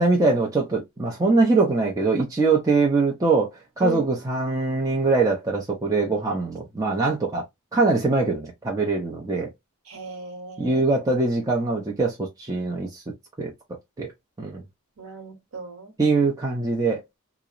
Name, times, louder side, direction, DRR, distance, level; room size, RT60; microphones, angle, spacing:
voice 1, 0.0-3.5 3.8-7.4 7.7-9.5 10.6-13.0 13.4-13.5 14.0-14.1 14.4-14.6 16.0-17.0, right 3 dB, 15° right, 0.5 m, -22 dB
voice 2, 9.9-10.8 15.0-16.0, right 4 dB, 80° right, 0.8 m, -35 dB
2.8 x 2.0 x 2.3 m
head